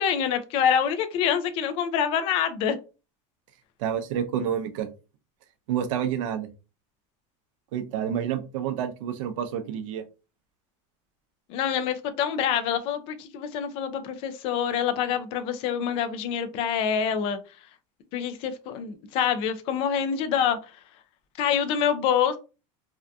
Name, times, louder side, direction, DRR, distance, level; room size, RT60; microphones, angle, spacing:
voice 1, 0.0-2.8 11.5-17.4 18.1-20.6 21.4-22.4, left 8 dB, 35° left, 0.3 m, -26 dB
voice 2, 3.8-4.9 5.7-6.5 7.7-10.0, right 9 dB, 75° right, 0.5 m, -29 dB
2.6 x 2.4 x 2.2 m
supercardioid pair, 175°, 16 cm